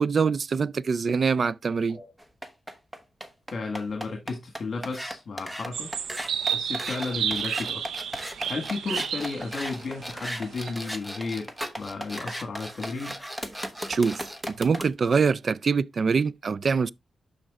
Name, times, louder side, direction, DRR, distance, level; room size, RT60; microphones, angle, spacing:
voice 1, 0.0-2.0 13.9-16.9, right 5 dB, 55° right, 0.3 m, -24 dB
sound 1, 2.2-14.9, equal, 10° right, 1.1 m, -36 dB
voice 2, 3.5-5.9 6.4-7.8 8.5-13.1, left 4 dB, 55° left, 1.6 m, -33 dB
sound 2, 5.7-10.7, right 8 dB, 90° right, 0.6 m, -31 dB
12.0 x 4.3 x 2.3 m
cardioid pair, 85°, 0 cm